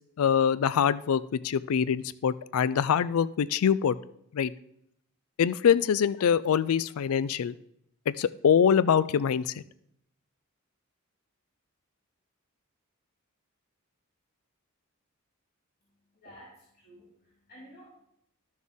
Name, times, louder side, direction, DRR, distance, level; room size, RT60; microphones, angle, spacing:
voice 1, 0.2-4.0 4.3-4.5 5.4-7.5 8.1-9.6, left 7 dB, 75° left, 17 dB, 0.4 m, -24 dB
voice 2, 16.2-17.9, equal, 45° left, -8 dB, 3.2 m, -52 dB
12.5 x 6.3 x 3.5 m, 0.74 s
head